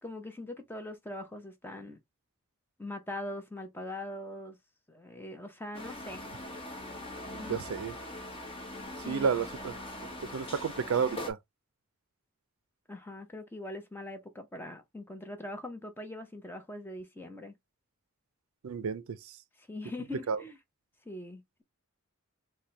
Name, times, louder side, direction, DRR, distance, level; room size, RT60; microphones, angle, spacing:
voice 1, 0.0-2.0 2.8-4.6 4.9-6.2 7.3-7.8 9.0-9.3 12.9-17.5 19.6-20.6 21.1-21.6, left 1 dB, 10° left, 0.6 m, -42 dB
sound 1, 5.7-11.3, left 1 dB, 25° left, 1.0 m, -42 dB
voice 2, 7.3-7.9 9.1-9.7 10.2-11.4 18.6-19.2 20.3-20.4, right 6 dB, 70° right, 0.4 m, -31 dB
4.2 x 2.2 x 3.1 m
head